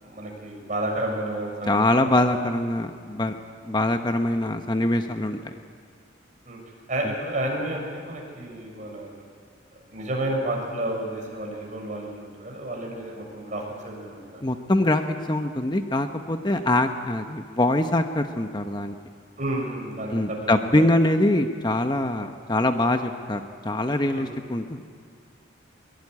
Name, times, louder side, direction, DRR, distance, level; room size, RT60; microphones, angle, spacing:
voice 1, 0.0-2.3 6.4-6.6 6.9-9.2 9.7-14.5 19.4-20.9 24.1-24.4, right 1 dB, 40° right, 0 dB, 6.6 m, -31 dB
voice 2, 1.7-3.4 3.7-5.5 14.4-18.9 20.1-24.8, left 1 dB, 25° left, 6 dB, 0.9 m, -23 dB
22.5 x 22.5 x 9.8 m, 2.2 s
head